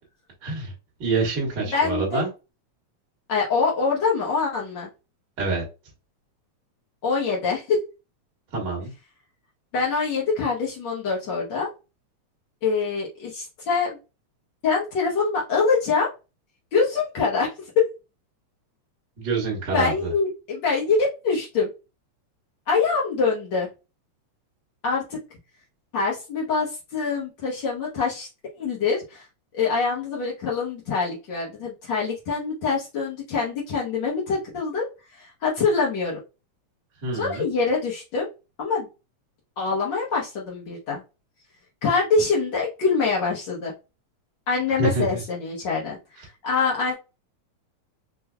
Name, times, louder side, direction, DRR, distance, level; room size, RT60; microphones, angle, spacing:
voice 1, 0.4-0.7 1.0-2.3 5.4-5.6 8.5-8.9 19.2-20.1 37.0-37.5 44.8-45.2, right 3 dB, 50° right, -4 dB, 1.5 m, -26 dB
voice 2, 1.7-2.2 3.3-4.9 7.0-7.8 9.7-11.7 12.6-14.0 14.6-16.1 16.7-17.5 17.7-17.9 19.7-21.7 22.7-23.7 24.8-25.2 25.9-28.3 28.6-29.3 29.5-34.9 35.1-36.2 37.1-38.3 38.6-38.9 39.6-41.0 41.8-43.7 44.5-47.0, left 4 dB, 70° left, -4 dB, 1.0 m, -24 dB
5.2 x 2.2 x 2.3 m, 0.28 s
omnidirectional pair, 3.4 m